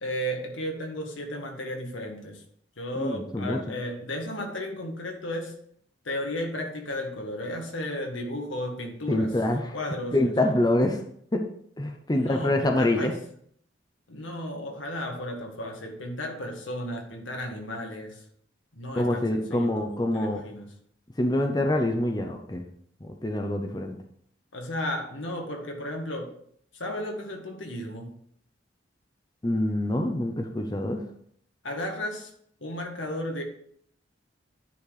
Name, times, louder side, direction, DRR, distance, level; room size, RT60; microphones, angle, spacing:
voice 1, 0.0-2.4 2.8-5.5 6.0-9.3 9.7-10.3 12.1-13.1 14.1-18.2 18.7-20.7 24.5-26.3 26.7-28.2 31.6-32.3 32.6-33.4, left 1 dB, 90° left, 2 dB, 1.7 m, -34 dB
voice 2, 3.0-3.6 9.1-9.7 10.1-11.0 11.3-11.4 11.8-13.1 18.9-20.4 21.2-22.6 23.0-24.0 29.4-31.0, left 1 dB, 20° left, 4 dB, 0.7 m, -25 dB
9.9 x 4.3 x 4.9 m, 0.66 s
head